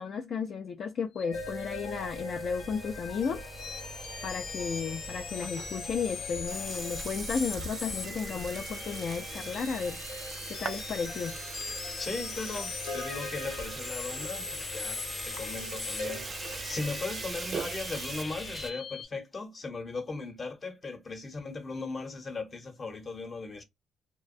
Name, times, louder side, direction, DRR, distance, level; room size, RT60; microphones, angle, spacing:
voice 1, 0.0-3.5 4.2-10.2 10.6-11.4, left 6 dB, 55° left, 0.3 m, -34 dB
sound 1, 1.2-19.0, left 5 dB, 90° left, 0.7 m, -40 dB
sound 2, 1.3-18.7, right 1 dB, ahead, 0.6 m, -43 dB
Burping eructation, 5.1-18.2, right 6 dB, 50° right, 0.3 m, -42 dB
voice 2, 12.0-15.0 15.2-16.4 16.6-23.6, left 3 dB, 35° left, 0.8 m, -38 dB
2.6 x 2.1 x 2.5 m
cardioid pair, 90°, 0 cm